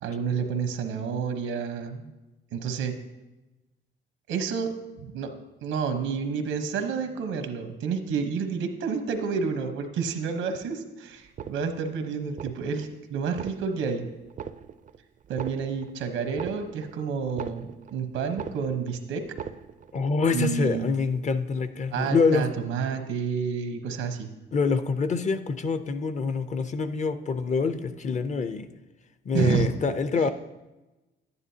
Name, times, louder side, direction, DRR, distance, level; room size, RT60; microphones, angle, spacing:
voice 1, 0.0-2.1 2.5-2.9 4.3-5.3 5.6-14.1 15.3-19.2 20.3-20.9 21.9-24.3 29.3-29.7 30.1-30.3, right 6 dB, 90° right, 7 dB, 1.0 m, -29 dB
pens in metal tin loop, 11.2-12.0 12.3-12.9 13.2-14.0 14.3-15.0 15.2-18.0 18.3-19.0 19.2-20.0 20.3-20.4, right 8 dB, 40° right, 0.4 m, -40 dB
voice 2, 19.9-22.5 24.5-28.7 29.3-30.3, left 4 dB, 35° left, 11 dB, 0.6 m, -26 dB
11.0 x 9.8 x 2.8 m, 1.1 s
cardioid pair, 90°, 20 cm